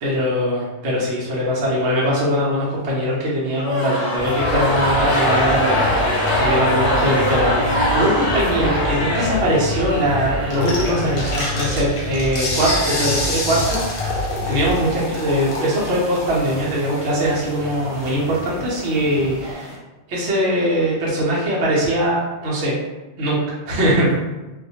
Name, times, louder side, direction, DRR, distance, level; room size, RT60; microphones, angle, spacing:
voice 1, 0.0-19.8 20.1-22.7 23.2-24.2, equal, 75° right, -5 dB, 0.9 m, -21 dB
sound 1, 3.5-12.0, equal, 25° left, 0.6 m, -22 dB
sound 2, 4.2-19.5, left 1 dB, 35° right, 0.8 m, -30 dB
sound 3, 10.5-19.8, left 1 dB, 55° left, 0.8 m, -29 dB
2.3 x 2.1 x 2.7 m, 1.1 s
omnidirectional pair, 1.2 m